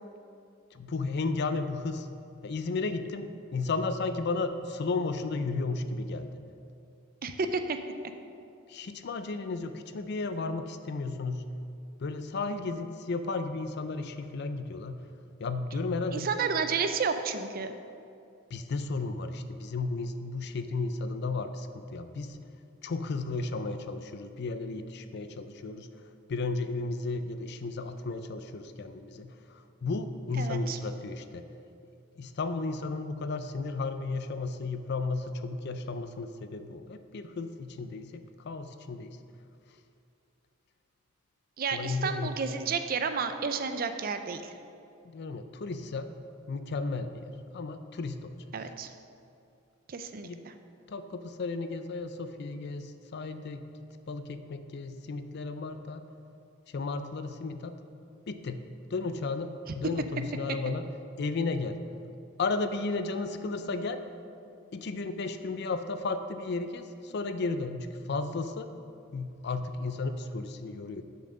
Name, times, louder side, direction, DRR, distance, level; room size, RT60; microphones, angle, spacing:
voice 1, 0.7-2.1 2.4-6.3 8.7-11.5 12.0-15.0 15.4-16.3 18.5-22.4 22.8-25.9 26.3-31.4 32.2-39.2 41.7-42.4 45.0-46.1 46.5-47.3 47.5-48.3 50.2-50.4 50.9-53.7 54.1-56.0 56.7-57.7 58.3-58.6 58.9-60.8 61.2-61.8 62.4-64.0 64.7-68.7 69.1-71.0, left 3 dB, 55° left, 10 dB, 0.4 m, -34 dB
voice 2, 7.2-7.8 16.1-17.7 30.4-30.8 41.6-44.5 48.5-48.9 49.9-50.5, right 5 dB, 45° right, 8 dB, 0.5 m, -31 dB
7.1 x 5.7 x 6.4 m, 2.5 s
head